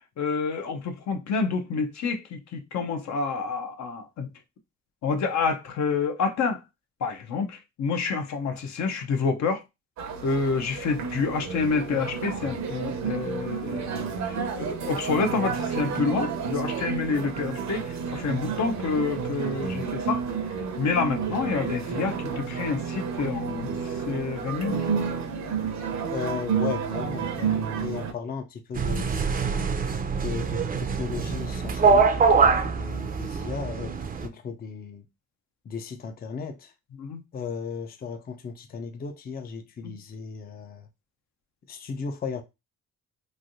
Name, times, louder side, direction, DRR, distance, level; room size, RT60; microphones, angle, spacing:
voice 1, 0.2-4.3 5.0-6.6 7.0-9.6 10.2-20.2 20.8-25.0 37.0-37.2 39.8-39.9, left 5 dB, 65° left, 0.7 m, -28 dB
sound 1, 10.0-28.1, right 6 dB, 65° right, 0.8 m, -31 dB
voice 2, 26.1-29.2 30.2-35.1 35.7-36.7 37.3-40.9 41.7-42.4, left 6 dB, 30° left, 0.5 m, -36 dB
sound 2, 28.7-34.3, right 5 dB, 30° right, 0.5 m, -24 dB
3.2 x 2.6 x 2.6 m
cardioid pair, 90°, 30 cm